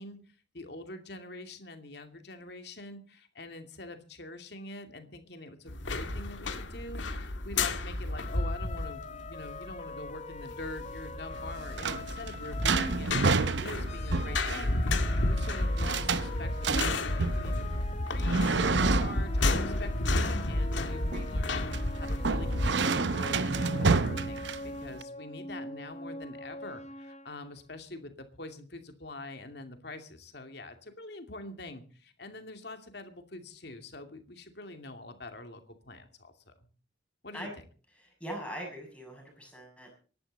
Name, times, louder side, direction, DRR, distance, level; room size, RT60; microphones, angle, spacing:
voice 1, 0.0-17.7 18.0-18.5 18.9-21.7 22.0-36.7 37.2-37.5, left 2 dB, 60° left, 7 dB, 2.5 m, -45 dB
sound 1, 5.7-22.7, left 2 dB, 85° left, 1.9 m, -31 dB
sound 2, 8.1-13.4 13.9-27.5, left 2 dB, 35° left, 1.1 m, -43 dB
sound 3, 11.4-25.0, right 4 dB, 70° right, 0.8 m, -30 dB
voice 2, 38.0-39.9, equal, 5° left, 0 dB, 6.8 m, -41 dB
25.0 x 11.5 x 4.1 m, 0.38 s
head